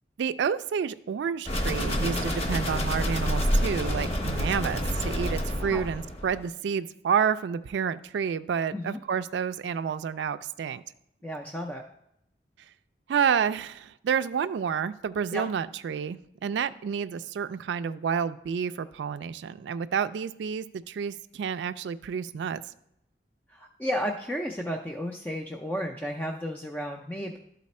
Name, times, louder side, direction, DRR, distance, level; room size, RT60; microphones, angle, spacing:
voice 1, 0.2-10.8 13.1-22.6, right 7 dB, 90° right, 12 dB, 0.3 m, -29 dB
sound 1, 1.5-6.4, equal, 35° left, 0.9 m, -28 dB
voice 2, 11.2-11.8 15.3-15.5 23.5-27.4, equal, 10° left, 1 dB, 0.4 m, -33 dB
11.5 x 4.0 x 4.2 m, 0.77 s
head